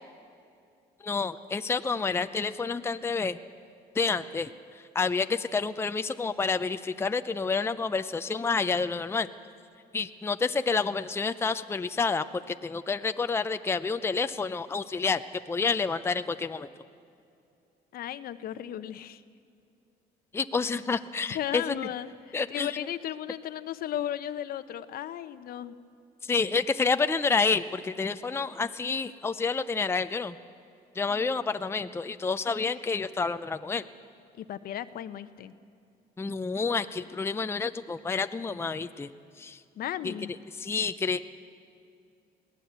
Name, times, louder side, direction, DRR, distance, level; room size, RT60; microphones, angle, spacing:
voice 1, 1.0-3.4 3.9-9.3 9.9-15.2 15.5-16.7 20.3-21.7 22.3-22.8 26.3-30.4 31.0-33.8 36.2-39.1 39.4-39.6 40.0-40.1 40.6-41.2, left 4 dB, 15° left, 10 dB, 0.6 m, -29 dB
voice 2, 17.9-19.2 21.3-25.8 31.1-31.3 34.4-35.5 39.8-40.3, left 11 dB, 60° left, 12 dB, 0.9 m, -35 dB
22.0 x 17.5 x 8.1 m, 2.5 s
cardioid pair, 110°, 17 cm